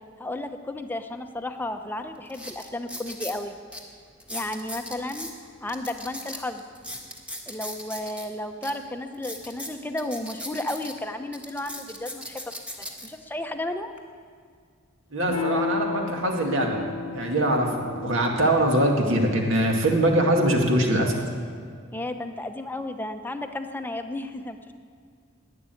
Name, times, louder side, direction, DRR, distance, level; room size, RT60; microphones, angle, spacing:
voice 1, 0.2-3.6 4.3-5.3 5.6-6.6 7.5-12.4 12.8-13.9 21.9-24.7, left 1 dB, 10° left, 6 dB, 0.7 m, -33 dB
sound 1, 1.6-1.7 2.3-3.4 3.7-3.8 4.2-5.3 5.7-8.3 8.6-8.7 9.1-10.9 11.3-13.1 13.7-14.0, equal, 5° right, 1.4 m, -38 dB
voice 2, 15.1-16.8 17.1-21.2, right 1 dB, 65° right, 1 dB, 2.1 m, -22 dB
Electric guitar / Strum, 15.2-20.3, left 5 dB, 90° left, 0.9 m, -34 dB
12.0 x 10.0 x 9.2 m, 2.1 s
head